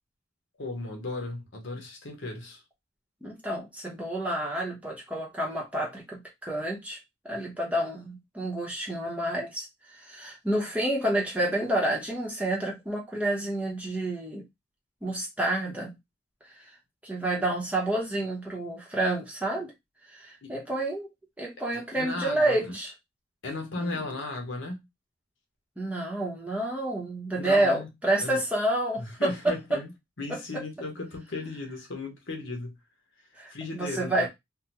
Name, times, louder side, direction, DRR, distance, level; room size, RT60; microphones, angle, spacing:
voice 1, 0.6-2.6 20.4-20.5 21.7-22.8 23.4-24.8 27.4-27.9 28.2-28.4 29.0-29.9 30.2-32.8 33.5-34.3, left 2 dB, 70° left, 1.0 m, -36 dB
voice 2, 3.2-7.0 7.2-14.4 15.0-15.9 16.4-16.7 17.0-19.7 20.1-21.1 21.4-22.9 23.8-24.0 25.8-29.8 30.3-30.4 33.4-34.3, right 1 dB, 5° right, 0.8 m, -29 dB
3.5 x 2.1 x 2.9 m
head